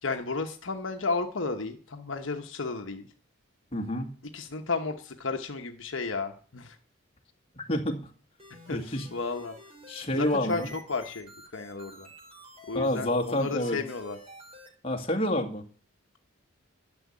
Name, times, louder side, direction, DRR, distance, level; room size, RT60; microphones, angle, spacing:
voice 1, 0.0-3.1 4.3-6.8 8.7-9.6 10.1-12.1 12.7-14.2, left 4 dB, 65° left, 5 dB, 1.1 m, -33 dB
voice 2, 3.7-4.1 7.6-8.1 8.7-9.1 9.9-10.7 12.7-13.8 14.8-15.6, left 1 dB, 30° left, 3 dB, 2.0 m, -28 dB
sound 1, 8.4-14.7, equal, 30° right, 4.5 m, -50 dB
12.0 x 7.2 x 9.6 m, 0.44 s
head